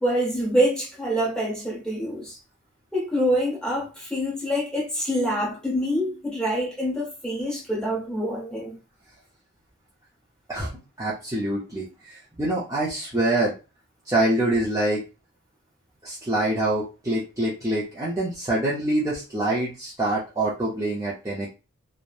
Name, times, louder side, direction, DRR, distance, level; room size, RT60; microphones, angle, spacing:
voice 1, 0.0-2.3 2.9-8.8, equal, 5° left, 0.9 m, -26 dB
voice 2, 11.0-13.5 14.1-15.0 16.0-21.5, right 1 dB, 15° right, 0.5 m, -25 dB
2.9 x 2.1 x 2.3 m
head